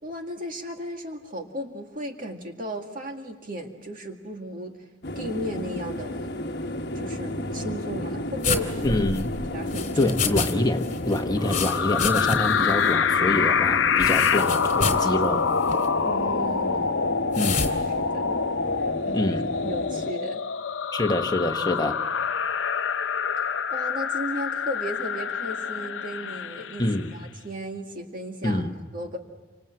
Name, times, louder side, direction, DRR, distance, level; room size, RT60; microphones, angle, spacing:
voice 1, 0.0-4.9 5.2-6.4 6.9-9.0 9.5-10.1 16.0-17.1 18.0-18.3 18.8-19.4 19.6-20.4 23.7-29.2, equal, 45° right, 2.1 m, -35 dB
sound 1, 5.0-20.1, left 1 dB, 55° left, 1.3 m, -33 dB
sound 2, 8.4-10.5 10.8-12.6 12.9-13.0 14.0-15.1 15.6-15.9 17.3-17.7, left 5 dB, 35° left, 3.3 m, -29 dB
voice 2, 8.8-9.3 10.0-15.5 17.4-17.8 19.1-19.5 20.9-22.0 26.8-27.1 28.4-28.7, left 1 dB, 20° left, 1.3 m, -26 dB
sound 3, 11.4-27.1, left 6 dB, 70° left, 0.8 m, -26 dB
29.0 x 26.0 x 7.8 m
head